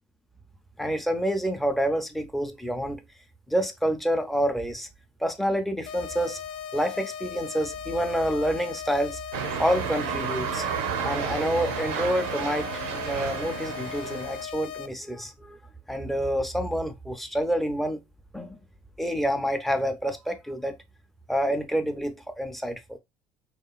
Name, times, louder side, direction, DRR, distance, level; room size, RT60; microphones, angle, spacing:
voice 1, 0.8-3.0 3.5-4.9 5.2-6.4 6.7-9.2 9.6-10.6 11.0-15.6 15.9-18.0 18.3-18.6 19.0-20.8 21.3-23.0, equal, ahead, 0.5 m, -28 dB
sound 1, 5.9-14.9, left 8 dB, 65° left, 0.4 m, -38 dB
sound 2, 9.3-14.4, right 9 dB, 80° right, 0.5 m, -32 dB
2.9 x 2.3 x 2.3 m
supercardioid pair, 85°, 10 cm